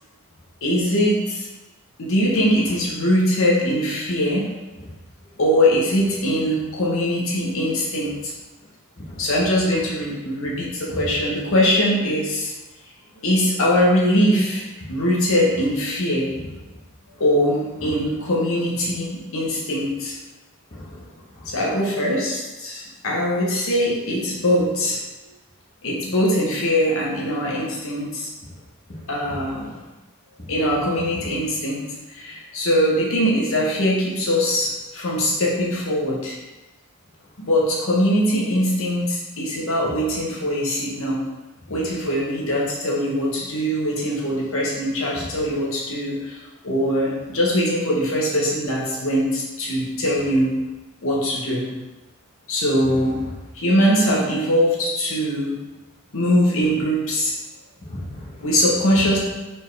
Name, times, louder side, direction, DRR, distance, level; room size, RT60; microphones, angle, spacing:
voice 1, 0.6-1.5 2.0-4.5 5.4-8.3 9.2-12.5 13.2-16.3 17.2-20.1 21.4-25.0 25.8-28.3 29.1-29.7 30.5-31.8 32.1-36.3 37.4-41.2 41.7-46.4 46.6-50.5 51.0-51.6 52.5-53.1 53.5-55.6 56.1-57.4 58.4-59.2, equal, 65° left, -4 dB, 1.0 m, -21 dB
voice 2, 9.0-9.3 10.9-11.1 17.8-17.9 20.7-21.1 21.4-21.6 28.9-29.4 29.7-29.8 30.4-30.5 31.2-31.3 39.8-40.0 45.2-45.3 52.8-52.9 57.8-58.4, left 1 dB, 35° left, -11 dB, 1.2 m, -36 dB
4.4 x 3.6 x 3.3 m, 1.1 s
head